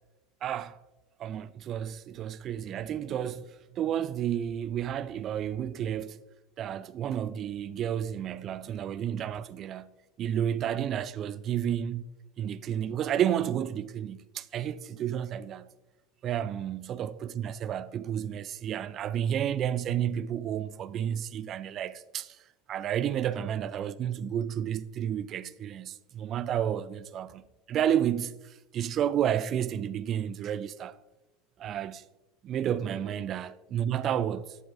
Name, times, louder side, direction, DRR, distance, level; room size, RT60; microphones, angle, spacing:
voice 1, 0.4-0.8 1.2-6.2 6.6-12.0 12.4-15.7 16.2-22.4 22.7-27.4 27.7-31.0 31.6-32.0 32.4-34.6, right 10 dB, 45° right, 0.4 m, -31 dB
11.5 x 7.0 x 2.5 m
hypercardioid pair, 90°, 0 cm